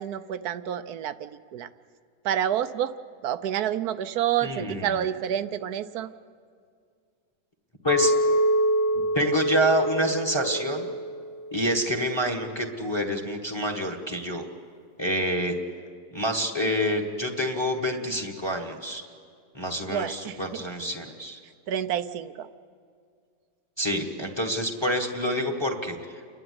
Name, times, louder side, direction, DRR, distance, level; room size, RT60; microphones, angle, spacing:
voice 1, 0.0-1.7 2.2-2.9 3.2-6.1 19.9-20.6 21.7-22.5, right 10 dB, 70° right, 13 dB, 1.2 m, -29 dB
voice 2, 4.4-5.0 7.8-8.2 9.1-10.9 11.5-14.4 15.0-15.6 16.1-19.0 19.5-21.4 23.8-26.3, equal, 15° left, 4 dB, 1.5 m, -27 dB
Chink clink, 7.9-12.1, right 1 dB, 45° left, 1.6 m, -26 dB
29.5 x 11.5 x 9.6 m, 2.2 s
omnidirectional pair, 1.8 m